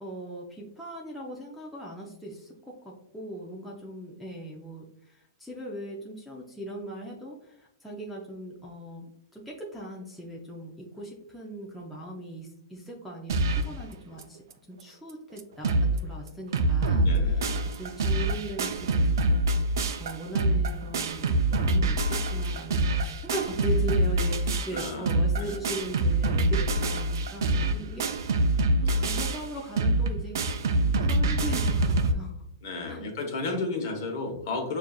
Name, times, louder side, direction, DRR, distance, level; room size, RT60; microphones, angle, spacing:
voice 1, 0.0-9.1 9.3-17.4 17.8-19.0 19.3-19.4 20.0-28.1 28.8-30.7 31.0-32.4 32.9-33.1, right 1 dB, ahead, -5 dB, 0.4 m, -39 dB
sound 1, 13.3-13.8 14.2-14.3 14.5-14.6 15.1-15.2 15.4-16.0 16.3-32.1, right 1 dB, 75° right, 0.4 m, -25 dB
voice 2, 17.0-17.6 24.7-25.6 27.4-27.7 28.8-29.0 30.8-31.1 32.6-34.8, left 3 dB, 50° left, 2 dB, 0.9 m, -34 dB
6.7 x 2.5 x 2.3 m, 0.74 s
supercardioid pair, 170°, 2 cm